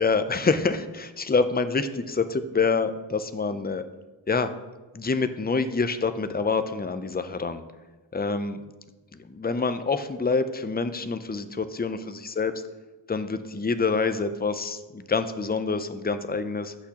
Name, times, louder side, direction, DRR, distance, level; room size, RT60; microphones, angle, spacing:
voice 1, 0.0-3.9 4.3-4.6 4.9-7.6 8.1-8.6 9.1-12.5 13.1-16.7, left 4 dB, 20° left, 10 dB, 0.5 m, -26 dB
14.5 x 6.0 x 2.9 m, 1.2 s
wide cardioid pair, 45°, 47 cm